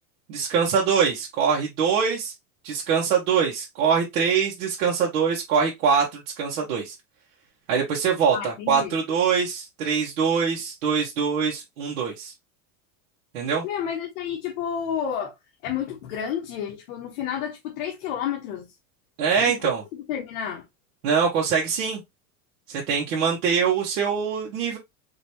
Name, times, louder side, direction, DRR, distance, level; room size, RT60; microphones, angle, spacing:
voice 1, 0.3-2.3 2.6-6.9 7.7-12.3 13.3-13.6 19.2-19.8 21.0-22.0 22.7-24.8, right 6 dB, 75° right, 1.5 m, -23 dB
voice 2, 8.3-9.0 13.6-15.3 15.6-18.7 19.4-20.7, left 8 dB, 60° left, 1.3 m, -31 dB
5.2 x 3.0 x 2.9 m
supercardioid pair, 175°, 45 cm